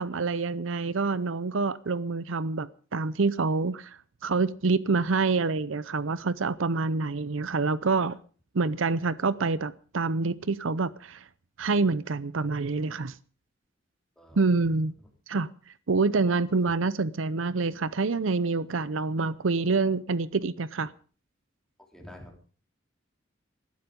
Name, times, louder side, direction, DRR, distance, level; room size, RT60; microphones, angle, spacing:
voice 1, 0.0-8.2 8.5-11.2 11.6-13.2 14.4-14.9 15.3-15.5 15.9-20.9, right 4 dB, 80° right, 0.7 m, -27 dB
voice 2, 14.2-14.7 16.6-16.7 21.9-22.5, left 1 dB, 5° left, 3.9 m, -49 dB
20.0 x 12.5 x 5.3 m
head